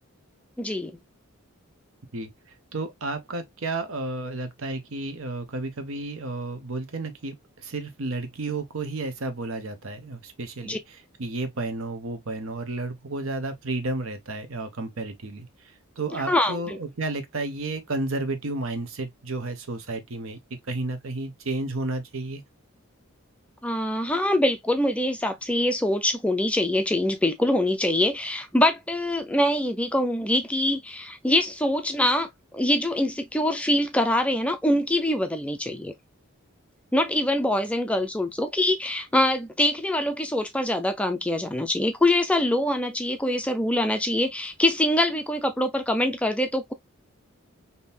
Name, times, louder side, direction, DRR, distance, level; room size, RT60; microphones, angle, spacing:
voice 1, 0.6-0.9 10.6-10.8 16.3-16.8 23.6-35.9 36.9-46.7, left 1 dB, 5° left, 0.3 m, -24 dB
voice 2, 2.1-22.4, right 2 dB, 75° right, 0.8 m, -32 dB
3.7 x 2.7 x 2.6 m
head